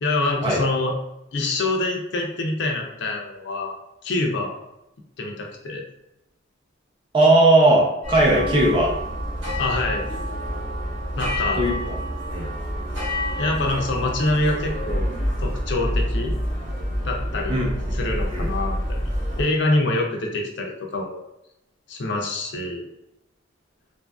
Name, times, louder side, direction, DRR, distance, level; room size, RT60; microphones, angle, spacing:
voice 1, 0.0-0.9 1.3-3.7 4.0-4.6 5.2-5.8 9.6-10.0 11.2-11.6 13.4-15.1 15.4-16.3 17.0-17.6 17.9-19.0 19.4-21.2 21.9-22.9, left 2 dB, 60° left, 1 dB, 0.4 m, -25 dB
voice 2, 7.1-8.9 11.6-12.0 12.3-12.5 17.5-17.7 18.3-18.5, right 1 dB, 25° right, -3 dB, 0.5 m, -18 dB
sound 1, 8.0-19.4, equal, 75° right, 1.1 m, -27 dB
2.6 x 2.5 x 2.3 m, 0.88 s
head